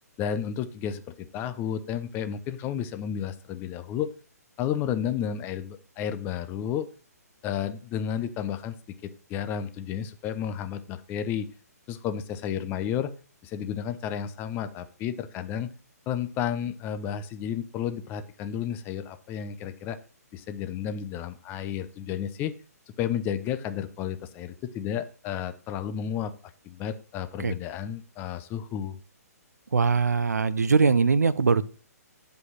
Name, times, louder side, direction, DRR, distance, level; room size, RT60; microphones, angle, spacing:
voice 1, 0.2-4.1 4.6-6.9 7.4-11.5 11.9-13.1 13.4-15.7 16.1-20.0 20.3-22.5 23.0-26.3 26.6-29.0, left 9 dB, 20° left, 11 dB, 0.7 m, -32 dB
voice 2, 29.7-31.7, right 4 dB, 75° right, 15 dB, 0.7 m, -22 dB
8.0 x 5.3 x 5.8 m, 0.38 s
figure-of-eight pair, 130°, 9 cm